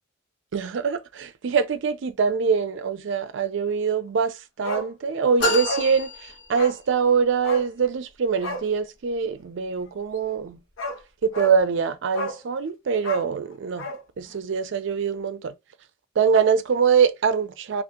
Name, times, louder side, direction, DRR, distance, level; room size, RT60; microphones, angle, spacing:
voice 1, 0.5-10.6 11.2-13.8 14.2-15.5 16.2-17.8, right 6 dB, 65° right, 0.4 m, -23 dB
Bark, 4.6-4.9 5.2-5.3 5.6-5.9 6.5-6.8 7.4-7.7 8.4-8.7 10.3-10.4 10.8-11.0 11.3-11.6 12.1-12.4 13.0-14.0 14.3-14.4, left 1 dB, 90° left, 0.9 m, -32 dB
sound 1, 5.4-7.1, left 1 dB, 60° left, 1.2 m, -28 dB
2.7 x 2.4 x 3.5 m
head